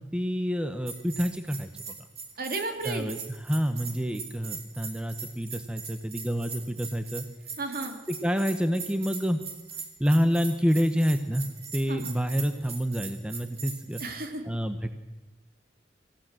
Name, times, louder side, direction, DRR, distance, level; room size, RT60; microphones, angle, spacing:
voice 1, 0.0-1.7 2.8-7.2 8.1-9.4 10.0-11.5 11.7-14.0 14.4-15.0, equal, 5° right, 8 dB, 1.0 m, -28 dB
Bell, 0.9-14.0, right 6 dB, 35° right, 3.0 m, -40 dB
voice 2, 2.4-3.1 7.6-8.0 11.9-12.1 14.0-14.4, right 2 dB, 55° right, 4 dB, 3.0 m, -33 dB
25.0 x 16.0 x 7.6 m, 1.1 s
head